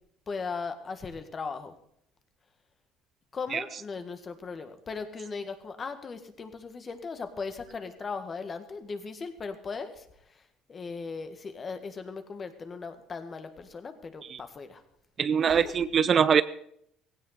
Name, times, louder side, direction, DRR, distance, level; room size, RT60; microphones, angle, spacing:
voice 1, 0.3-1.7 3.3-10.1 10.7-14.8 15.4-15.7, left 4 dB, 30° left, 8 dB, 1.9 m, -38 dB
voice 2, 15.2-16.4, right 7 dB, 40° right, 15 dB, 0.6 m, -23 dB
16.5 x 16.5 x 4.1 m, 0.69 s
cardioid pair, 105°, 0 cm